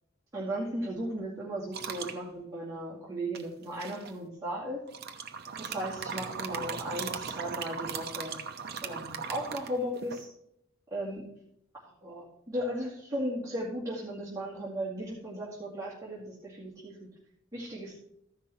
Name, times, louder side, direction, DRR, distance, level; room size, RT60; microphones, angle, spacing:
voice 1, 0.3-4.9 5.6-8.4 8.8-10.3 10.9-11.3 12.0-17.1 17.5-17.9, equal, 15° right, -7 dB, 2.4 m, -36 dB
sound 1, 1.7-2.2 3.3-4.1 4.9-10.2, right 6 dB, 55° right, 0.9 m, -38 dB
14.0 x 5.9 x 4.3 m, 0.74 s
head